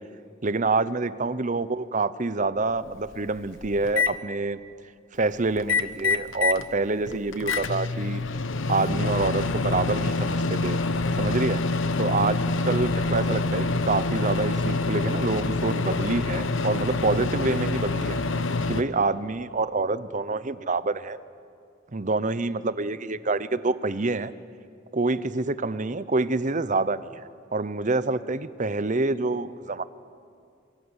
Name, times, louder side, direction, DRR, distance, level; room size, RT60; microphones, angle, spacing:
voice 1, 0.4-4.6 5.1-8.2 8.7-10.8 11.2-11.6 12.0-18.2 18.7-21.2 21.9-24.3 24.9-27.2 27.5-29.8, right 3 dB, 40° right, 15 dB, 0.8 m, -27 dB
Microwave oven, 2.6-2.7 3.1-4.1 5.6-6.7 7.0-18.8, left 3 dB, 75° left, 1.1 m, -26 dB
28.5 x 23.0 x 8.2 m, 2.3 s
head